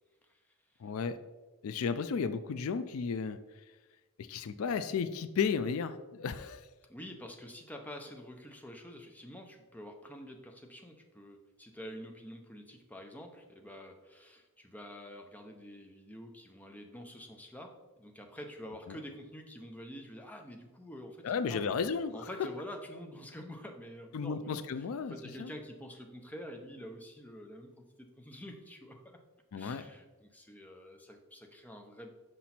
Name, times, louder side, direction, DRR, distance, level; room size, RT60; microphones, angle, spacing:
voice 1, 0.8-1.2 1.6-3.4 4.2-6.6 18.9-19.0 21.2-22.3 24.1-25.5 29.5-29.8, left 6 dB, 70° left, 12 dB, 0.4 m, -34 dB
voice 2, 6.9-21.7 22.1-29.2 29.5-32.1, equal, 5° left, 3 dB, 0.6 m, -47 dB
6.0 x 5.2 x 4.2 m, 1.2 s
head